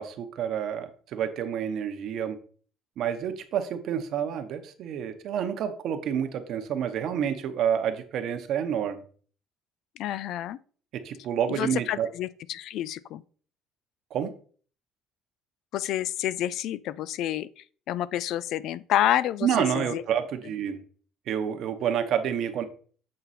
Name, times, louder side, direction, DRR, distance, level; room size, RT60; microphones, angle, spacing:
voice 1, 0.0-2.4 3.0-9.0 10.9-12.1 14.1-14.3 19.4-20.8 21.3-22.6, right 8 dB, 55° right, 0.9 m, -29 dB
voice 2, 10.0-10.6 11.5-13.2 15.7-19.5 19.7-20.0, left 12 dB, 60° left, 0.3 m, -29 dB
7.6 x 3.9 x 4.1 m
cardioid pair, 140°, 0 cm